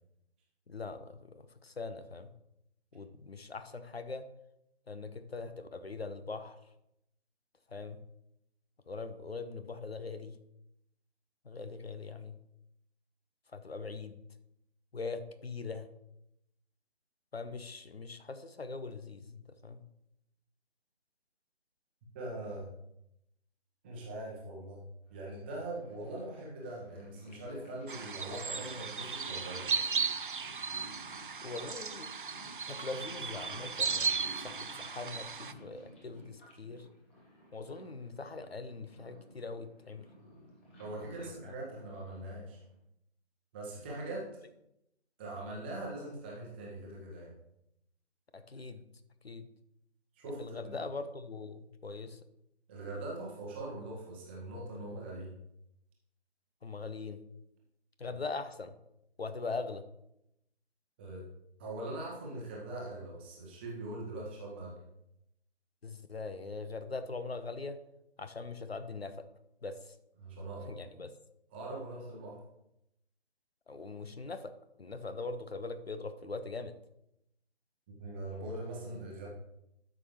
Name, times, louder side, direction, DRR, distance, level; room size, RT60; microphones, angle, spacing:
voice 1, 0.7-2.3 2.9-4.2 4.9-6.6 7.7-8.0 8.9-10.4 11.4-12.4 13.5-14.2 14.9-15.9 17.3-19.4 19.6-19.8 31.4-32.1 32.7-36.9 37.5-40.1 41.2-41.5 48.3-48.8 49.2-49.5 50.4-52.2 56.6-57.2 58.0-58.7 59.2-59.8 65.8-67.8 68.2-69.1 69.6-70.0 70.7-71.1 73.7-74.5 74.8-76.7, left 3 dB, 65° left, 11 dB, 0.9 m, -41 dB
voice 2, 22.1-22.7 23.8-24.8 25.1-29.7 40.8-42.6 43.5-44.3 45.2-47.3 50.1-50.7 52.7-55.3 61.0-61.2 61.6-64.8 70.2-70.8 71.5-72.4 77.9-79.3, right 2 dB, 10° right, -4 dB, 1.0 m, -42 dB
Purr, 25.1-42.8, equal, 10° left, 0.9 m, -54 dB
sound 1, 27.9-35.5, right 5 dB, 50° right, 0.5 m, -36 dB
12.0 x 6.3 x 3.1 m, 0.81 s
figure-of-eight pair, 150°, 33 cm